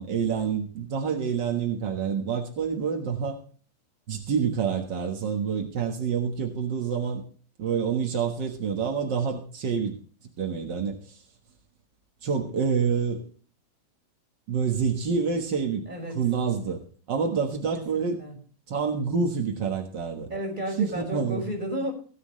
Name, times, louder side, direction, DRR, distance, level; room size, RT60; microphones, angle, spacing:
voice 1, 0.0-3.4 4.1-7.2 7.6-10.0 10.4-11.2 12.2-13.2 14.5-15.8 16.1-16.8 17.1-18.2 18.7-20.3 20.8-21.5, right 6 dB, 70° right, 3 dB, 1.0 m, -27 dB
voice 2, 15.9-16.2 17.9-18.3 20.1-21.9, equal, 10° right, 0 dB, 4.6 m, -32 dB
17.0 x 11.0 x 3.2 m, 0.41 s
omnidirectional pair, 4.3 m